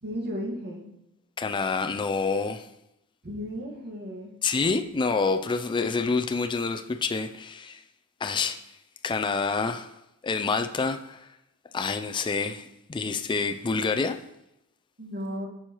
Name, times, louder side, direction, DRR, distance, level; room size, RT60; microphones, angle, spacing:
voice 1, 0.0-0.8 3.2-4.3 15.0-15.5, equal, 50° right, -1 dB, 1.6 m, -34 dB
voice 2, 1.4-2.7 4.4-7.8 8.2-8.6 9.0-9.9 10.2-11.3 11.7-14.2, left 4 dB, 20° left, 7 dB, 0.3 m, -27 dB
9.9 x 6.3 x 3.0 m, 0.86 s
head